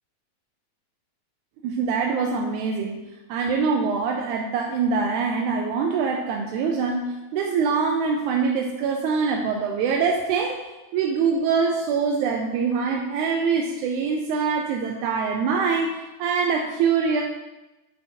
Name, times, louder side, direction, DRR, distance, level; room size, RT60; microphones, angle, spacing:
voice 1, 1.6-3.0 3.3-10.6 10.9-17.2, right 5 dB, 90° right, 1 dB, 2.1 m, -24 dB
8.1 x 7.6 x 2.8 m, 1.1 s
omnidirectional pair, 3.4 m